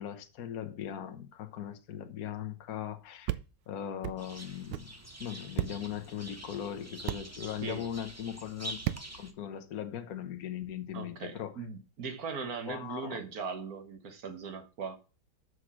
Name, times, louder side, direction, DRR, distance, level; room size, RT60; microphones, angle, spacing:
voice 1, 0.0-3.4 3.7-4.9 5.2-8.8 9.2-11.6 12.7-13.2, left 10 dB, 60° left, 1.3 m, -39 dB
sound 1, 3.3-3.4 4.0-4.2 4.7-4.9 5.6-5.7 7.1-7.2 8.8-9.0, right 15 dB, 80° right, 1.3 m, -32 dB
sound 2, 4.2-9.3, right 1 dB, 15° right, 0.7 m, -46 dB
voice 2, 10.9-15.0, right 5 dB, 55° right, 1.6 m, -39 dB
6.4 x 6.3 x 6.0 m
omnidirectional pair, 1.9 m